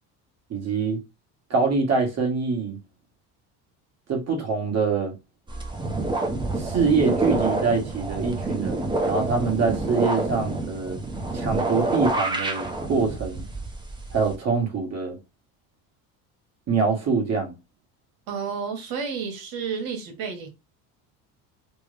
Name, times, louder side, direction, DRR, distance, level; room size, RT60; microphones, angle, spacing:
voice 1, 0.5-1.0 1.5-2.8 4.1-5.1 6.5-11.0 11.3-13.5 14.1-15.2 16.7-17.5, right 4 dB, 40° right, 1.5 m, -24 dB
sound 1, 5.5-14.3, right 2 dB, 10° right, 0.7 m, -27 dB
voice 2, 18.3-20.5, right 6 dB, 70° right, 1.4 m, -31 dB
3.5 x 2.1 x 3.3 m
cardioid pair, 105°, 38 cm